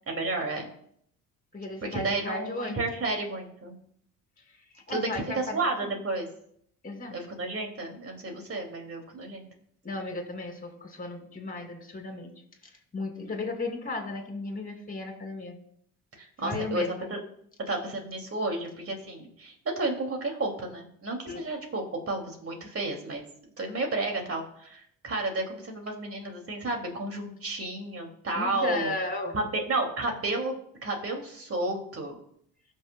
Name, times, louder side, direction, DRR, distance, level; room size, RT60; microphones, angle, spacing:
voice 1, 0.1-0.7 1.9-3.7 4.9-6.3 7.1-9.5 16.2-16.8 17.1-17.2 17.7-23.2 23.6-28.9 29.3-30.5 30.8-32.2, right 2 dB, 35° right, 2 dB, 2.5 m, -32 dB
voice 2, 1.5-2.8 4.7-5.9 6.8-7.2 9.8-12.3 12.9-15.6 16.4-17.1 21.3-21.4 28.3-29.4, left 2 dB, 20° left, 3 dB, 2.7 m, -35 dB
16.5 x 6.3 x 2.2 m, 0.68 s
supercardioid pair, 85°, 38 cm